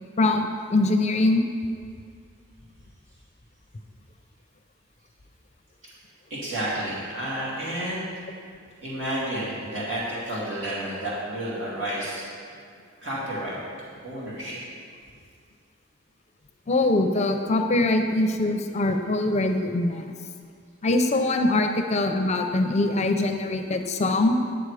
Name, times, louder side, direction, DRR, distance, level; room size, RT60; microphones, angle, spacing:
voice 1, 0.2-1.4 16.7-20.1 20.8-24.4, left 2 dB, 35° left, 5 dB, 0.5 m, -23 dB
voice 2, 6.3-8.1 8.8-12.3 13.0-13.6 14.0-14.6, right 1 dB, 70° right, -8 dB, 2.4 m, -31 dB
10.5 x 7.2 x 4.9 m, 2.1 s
head